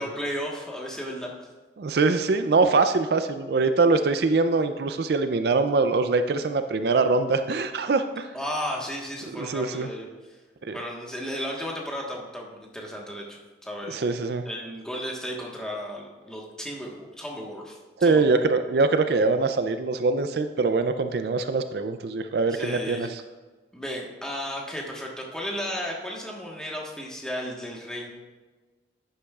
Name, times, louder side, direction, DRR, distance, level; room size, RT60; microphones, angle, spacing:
voice 1, 0.0-1.3 8.3-10.1 10.7-14.0 14.4-18.3 22.5-23.1 23.7-28.1, equal, 5° left, -2 dB, 1.3 m, -34 dB
voice 2, 1.8-8.3 9.3-9.9 10.6-10.8 13.9-14.4 18.0-23.2, right 3 dB, 60° right, 9 dB, 0.4 m, -23 dB
11.0 x 8.4 x 2.4 m, 1.3 s
head